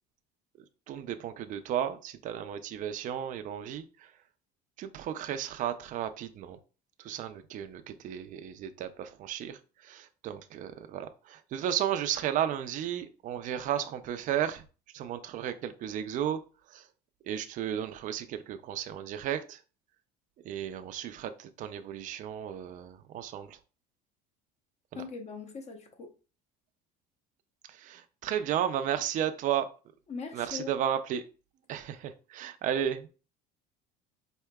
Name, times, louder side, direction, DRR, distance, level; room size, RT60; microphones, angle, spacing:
voice 1, 0.9-4.1 4.8-6.6 7.0-14.6 14.9-16.4 16.7-16.9 17.2-19.6 20.4-23.6 24.9-25.0 27.7-29.7 30.3-31.2 31.7-33.1, right 10 dB, 40° right, 0.4 m, -34 dB
voice 2, 24.9-26.1 30.1-30.7, left 5 dB, 35° left, 0.8 m, -40 dB
4.5 x 2.8 x 2.2 m
cardioid pair, 120°, 20 cm